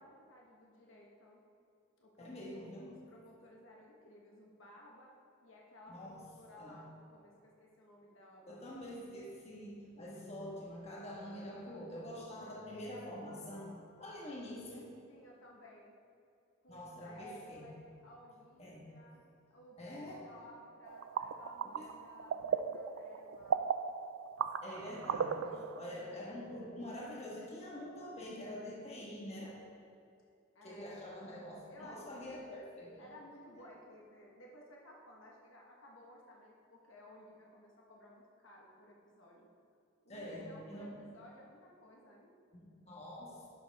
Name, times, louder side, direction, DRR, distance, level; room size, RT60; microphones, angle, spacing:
voice 1, 0.0-1.4 2.0-8.8 12.4-12.6 15.1-16.0 16.6-19.2 19.5-19.8 20.1-23.7 25.3-26.2 30.5-31.2 31.7-32.6 33.0-39.5 40.0-42.3, left 1 dB, 65° left, -2 dB, 1.2 m, -57 dB
voice 2, 2.2-3.0 5.9-6.2 6.6-6.9 8.5-15.0 16.7-17.7 18.6-18.9 19.8-20.3 21.6-21.9 24.6-25.4 25.7-29.6 30.6-33.1 33.5-33.7 40.1-40.9 42.5-43.5, left 1 dB, 30° left, -4 dB, 1.4 m, -46 dB
sound 1, 20.9-25.9, right 7 dB, 65° right, 0.3 m, -37 dB
11.0 x 6.5 x 3.5 m, 2.5 s
head